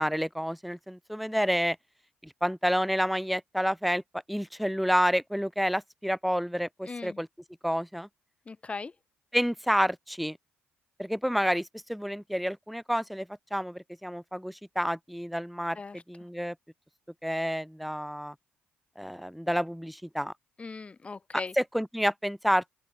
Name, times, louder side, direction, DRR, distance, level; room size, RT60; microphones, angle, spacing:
voice 1, 0.0-1.8 2.2-4.0 4.3-7.3 7.6-8.1 9.3-10.4 11.0-15.8 16.1-16.6 17.2-18.3 19.0-20.3 21.6-22.7, equal, ahead, 3.5 m, -29 dB
voice 2, 6.8-7.2 8.5-8.9 15.8-16.0 20.6-21.5, left 4 dB, 30° left, 2.1 m, -39 dB
open air
supercardioid pair, 65°, 4 cm